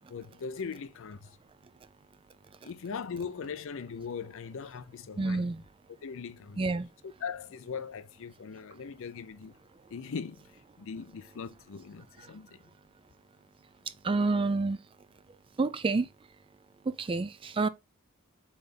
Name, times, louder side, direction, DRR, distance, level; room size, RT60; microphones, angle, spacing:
voice 1, 0.1-1.3 2.6-5.5 6.0-6.6 7.2-9.6 9.9-12.6, left 6 dB, 65° left, 0.5 m, -40 dB
voice 2, 5.2-5.6 6.6-6.8 14.0-14.8 15.6-16.1 16.9-17.7, right 3 dB, 25° right, 0.4 m, -28 dB
3.9 x 3.5 x 3.7 m
head